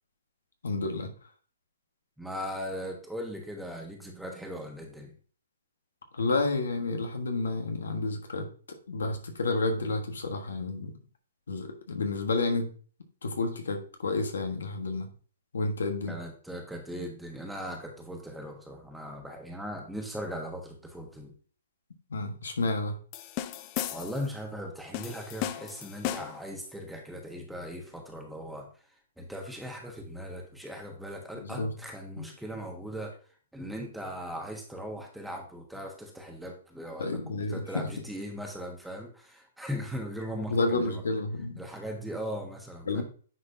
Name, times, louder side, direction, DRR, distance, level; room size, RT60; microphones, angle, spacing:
voice 1, 0.6-1.1 6.1-8.5 8.9-10.9 11.5-12.7 13.2-15.1 15.5-16.2 22.1-22.9 31.3-31.7 32.2-32.3 37.0-37.9 40.5-41.6 42.9-43.0, left 3 dB, 80° left, 4 dB, 1.4 m, -30 dB
voice 2, 2.2-5.2 16.1-21.3 23.9-28.7 29.2-33.1 33.5-41.0 41.6-43.0, equal, ahead, 1 dB, 1.3 m, -39 dB
sound 1, 23.1-24.3 24.9-26.5, left 12 dB, 35° left, 0.5 m, -35 dB
9.8 x 4.0 x 2.8 m, 0.41 s
hypercardioid pair, 140°, 0 cm